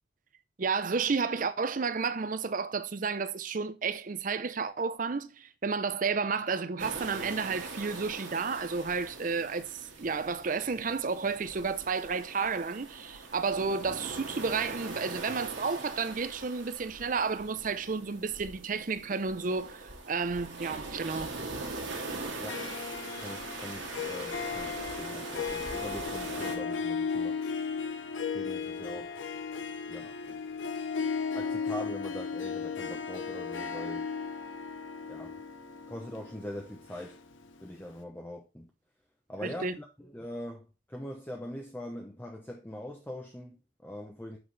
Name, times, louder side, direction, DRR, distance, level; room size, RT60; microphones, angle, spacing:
voice 1, 0.6-21.3 39.4-39.7, right 5 dB, 45° right, 0.5 m, -31 dB
sound 1, 6.8-26.6, right 3 dB, 80° right, 2.0 m, -42 dB
Harp, 22.3-37.6, left 5 dB, 80° left, 0.8 m, -36 dB
voice 2, 23.1-27.4 28.3-29.2 29.9-30.4 31.3-34.1 35.1-35.4 35.9-37.2 37.6-38.7 39.3-44.4, equal, 10° left, 0.7 m, -42 dB
7.9 x 5.8 x 3.3 m
head